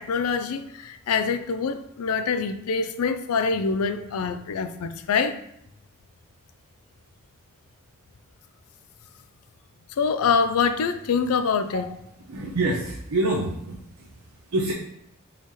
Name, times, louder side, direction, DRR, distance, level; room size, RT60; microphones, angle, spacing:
voice 1, 0.0-5.4 10.0-11.9, left 5 dB, 80° left, 0.4 m, -25 dB
voice 2, 12.3-14.2 14.5-14.7, right 2 dB, 80° right, 0.7 m, -26 dB
4.1 x 4.0 x 3.1 m
head